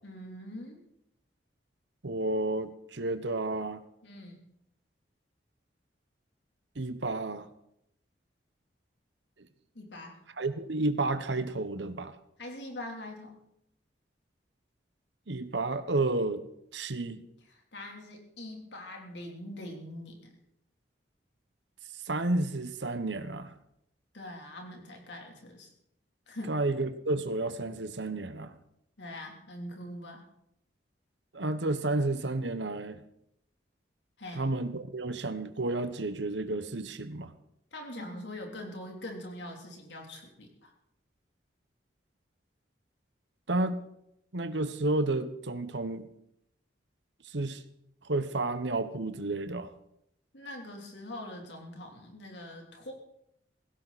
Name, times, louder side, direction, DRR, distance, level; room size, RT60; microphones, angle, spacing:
voice 1, 0.0-0.8 4.0-4.4 9.8-10.2 12.4-13.4 17.5-20.4 24.1-25.7 26.3-26.6 29.0-30.2 34.2-34.5 37.7-40.7 50.3-52.9, left 1 dB, 75° left, 2 dB, 3.4 m, -43 dB
voice 2, 2.0-3.8 6.7-7.5 10.4-12.1 15.3-16.4 16.7-17.2 22.0-23.5 26.5-28.5 31.3-33.0 34.3-37.3 43.5-43.9 44.3-46.1 47.2-47.6 48.0-49.7, right 2 dB, 75° right, 11 dB, 1.2 m, -31 dB
16.5 x 16.0 x 4.2 m, 0.76 s
head